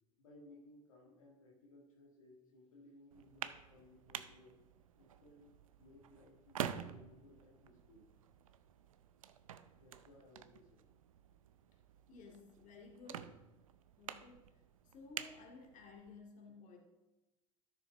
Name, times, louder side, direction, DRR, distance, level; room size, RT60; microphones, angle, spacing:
voice 1, 0.2-4.6 5.0-5.5 5.8-8.1 9.8-10.9 13.2-13.3 16.5-16.8, left 2 dB, 90° left, -2 dB, 1.9 m, -61 dB
sound 1, 3.1-16.2, right 9 dB, 90° right, 0.5 m, -49 dB
voice 2, 12.1-13.4 14.0-14.5 14.8-16.8, left 3 dB, 50° left, 1 dB, 2.2 m, -55 dB
12.5 x 6.8 x 3.5 m, 1.0 s
hypercardioid pair, 75°, 17 cm